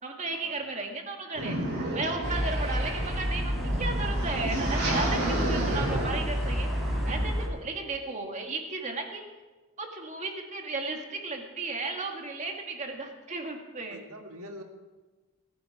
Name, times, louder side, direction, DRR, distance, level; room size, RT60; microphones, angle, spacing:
voice 1, 0.0-1.6 1.9-6.7 7.1-9.2 9.8-14.0, right 3 dB, 35° right, 3 dB, 1.9 m, -34 dB
sound 1, 1.4-7.2, right 1 dB, 55° right, 5.2 m, -32 dB
sound 2, 2.2-7.5, equal, ahead, 3.3 m, -30 dB
voice 2, 13.9-14.6, equal, 80° right, 4 dB, 1.9 m, -44 dB
19.0 x 10.5 x 4.8 m, 1.3 s
head